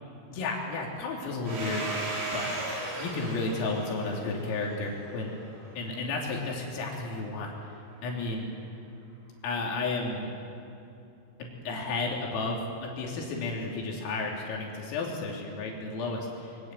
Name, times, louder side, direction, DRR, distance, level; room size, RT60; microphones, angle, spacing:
voice 1, 0.3-1.8 2.3-2.6 3.0-5.3 5.8-7.5 8.0-8.5 9.4-10.3 11.4-16.7, left 3 dB, 85° left, -1 dB, 5.9 m, -32 dB
Domestic sounds home sounds, 1.5-5.9, right 2 dB, 50° right, 6.6 m, -36 dB
27.0 x 24.0 x 7.8 m, 2.7 s
omnidirectional pair, 5.8 m